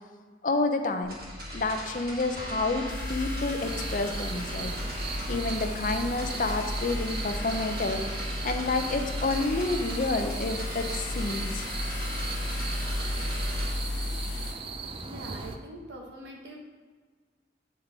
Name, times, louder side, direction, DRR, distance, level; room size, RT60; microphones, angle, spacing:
voice 1, 0.4-1.2 1.5-4.7 5.3-11.7, left 3 dB, 50° left, 6 dB, 0.6 m, -29 dB
sound 1, 1.0-13.7, equal, 55° right, 1.6 m, -38 dB
sound 2, 2.9-14.5, left 1 dB, 80° left, 1.2 m, -35 dB
sound 3, 3.6-15.6, right 5 dB, 30° right, 0.4 m, -39 dB
voice 2, 15.0-16.6, right 1 dB, 85° right, 0 dB, 1.2 m, -43 dB
8.1 x 3.7 x 4.7 m, 1.4 s
head